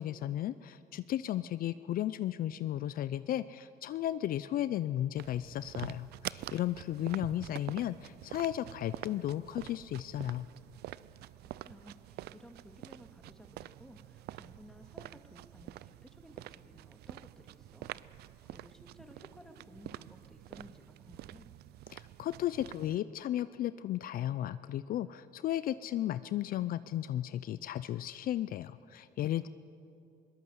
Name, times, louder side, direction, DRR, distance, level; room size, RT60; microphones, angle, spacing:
voice 1, 0.0-10.5 21.9-29.5, left 12 dB, 60° left, 15 dB, 0.5 m, -34 dB
sound 1, 5.2-23.0, right 15 dB, 70° right, 0.5 m, -47 dB
voice 2, 11.4-21.5 29.4-29.5, left 1 dB, 5° left, 5 dB, 1.9 m, -56 dB
21.5 x 18.5 x 7.9 m, 2.7 s
cardioid pair, 110°, 17 cm